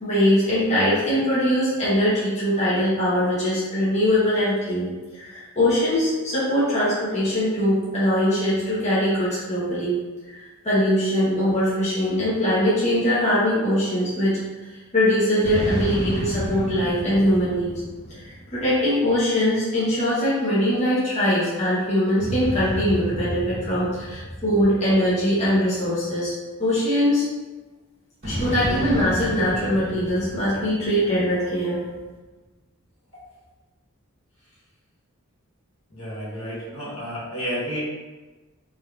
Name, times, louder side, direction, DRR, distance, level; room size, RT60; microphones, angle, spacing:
voice 1, 0.0-9.9 10.3-14.4 14.9-17.7 18.2-26.3 26.6-27.2 28.2-31.8, equal, 30° left, -10 dB, 1.0 m, -22 dB
sound 1, 15.4-19.1 22.2-25.9 28.2-31.7, equal, 60° right, 1.3 m, -31 dB
voice 2, 35.9-37.8, equal, 75° left, -9 dB, 1.5 m, -31 dB
3.4 x 2.9 x 2.3 m, 1.2 s
head